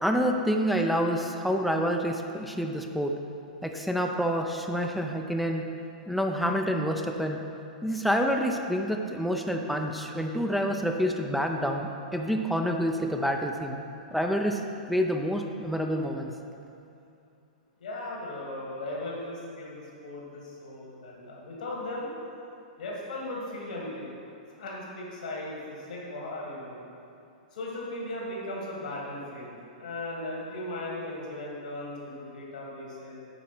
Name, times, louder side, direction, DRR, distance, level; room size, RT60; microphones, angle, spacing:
voice 1, 0.0-3.1 3.6-5.7 6.1-7.4 7.8-13.8 14.1-14.6 14.9-16.3, equal, ahead, 2 dB, 0.6 m, -28 dB
voice 2, 17.8-22.1 22.8-24.1 24.5-26.8 27.5-33.2, left 1 dB, 80° left, -3 dB, 2.0 m, -37 dB
9.2 x 5.1 x 6.0 m, 2.6 s
hypercardioid pair, 115°, 4 cm